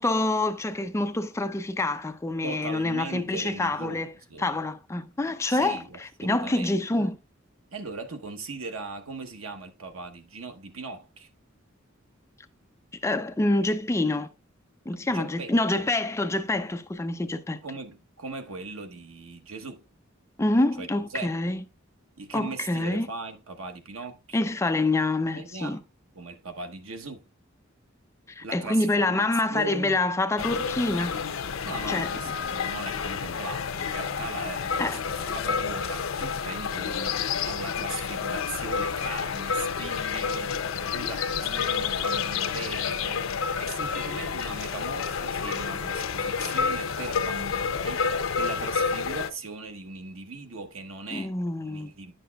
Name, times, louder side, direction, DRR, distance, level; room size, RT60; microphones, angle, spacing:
voice 1, 0.0-4.1 4.4-7.2 13.0-14.3 14.9-17.6 20.4-21.6 22.3-23.1 24.3-25.8 28.3-31.2 31.9-32.1 34.8-35.0 51.1-51.9, left 2 dB, 15° left, 0.4 m, -26 dB
voice 2, 2.4-4.5 5.5-7.1 7.7-11.3 15.1-15.9 17.6-19.9 20.8-21.4 22.2-24.4 25.3-25.8 26.1-27.2 28.4-30.0 31.6-51.3 51.7-52.1, right 3 dB, 90° right, 1.0 m, -39 dB
sound 1, 30.4-49.3, left 6 dB, 75° left, 0.6 m, -29 dB
10.0 x 6.6 x 2.3 m
head